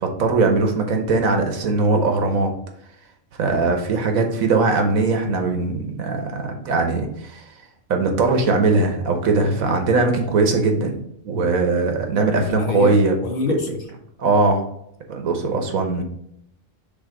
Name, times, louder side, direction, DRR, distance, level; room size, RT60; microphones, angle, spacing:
voice 1, 0.0-2.5 3.4-7.5 7.9-11.0 11.2-13.1 13.5-13.6 14.2-14.6 15.1-16.0, right 3 dB, 80° right, 4 dB, 1.4 m, -20 dB
voice 2, 12.4-13.8, left 3 dB, 45° left, 2 dB, 1.1 m, -26 dB
6.1 x 3.5 x 4.8 m, 0.73 s
omnidirectional pair, 1.4 m